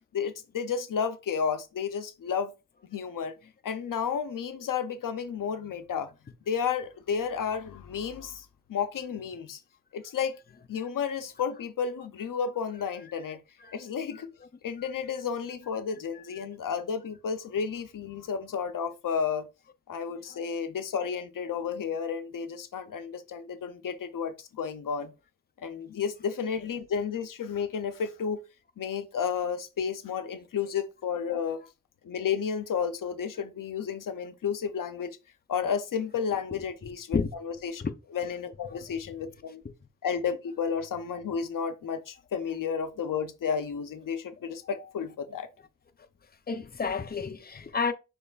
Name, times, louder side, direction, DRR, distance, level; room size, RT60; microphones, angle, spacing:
voice 1, 0.1-2.5 2.9-3.3 3.6-6.1 6.5-9.6 9.9-10.4 10.7-13.4 13.7-14.3 14.6-19.5 19.9-25.1 25.6-28.4 28.8-31.6 32.0-35.2 35.5-37.8 38.1-39.6 40.0-45.5, left 6 dB, 90° left, 0.5 m, -32 dB
voice 2, 46.5-47.9, left 5 dB, 30° left, 0.5 m, -30 dB
6.5 x 3.0 x 2.3 m
wide cardioid pair, 60°, 32 cm